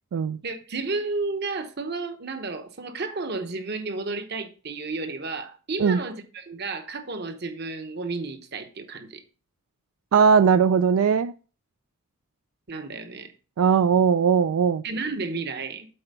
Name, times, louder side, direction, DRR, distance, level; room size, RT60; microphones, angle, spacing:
voice 1, 0.4-9.2 12.7-13.3 14.8-15.9, right 3 dB, 50° right, 1.0 m, -32 dB
voice 2, 10.1-11.3 13.6-14.8, right 6 dB, 80° right, 0.3 m, -19 dB
7.8 x 4.5 x 5.4 m
head